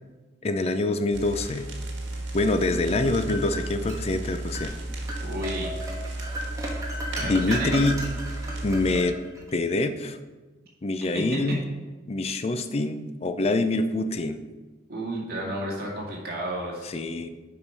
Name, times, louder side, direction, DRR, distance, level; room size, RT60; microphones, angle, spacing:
voice 1, 0.4-1.7 2.3-4.7 7.2-8.1 8.6-9.2 9.5-10.2 10.8-11.6 12.1-14.4 16.8-17.3, left 2 dB, 35° left, 9 dB, 0.4 m, -25 dB
sound 1, 1.1-9.0, right 2 dB, 85° right, 1.6 m, -34 dB
sound 2, 2.7-4.0 4.5-4.7 5.1-9.5, equal, 20° right, 1.2 m, -35 dB
voice 2, 5.2-5.7 7.1-7.7 11.1-11.6 14.9-16.8, right 1 dB, 55° right, -3 dB, 2.2 m, -32 dB
7.2 x 5.1 x 5.4 m, 1.2 s
head